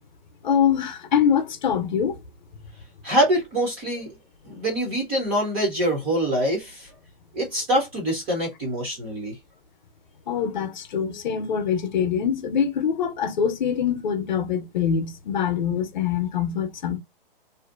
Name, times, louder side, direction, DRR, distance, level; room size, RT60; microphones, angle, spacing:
voice 1, 0.4-2.2 10.3-17.0, left 8 dB, 50° left, 0.6 m, -24 dB
voice 2, 3.0-4.1 4.5-6.9 7.3-9.3, right 1 dB, 15° right, 0.4 m, -24 dB
2.5 x 2.2 x 2.2 m
hypercardioid pair, 150°, 29 cm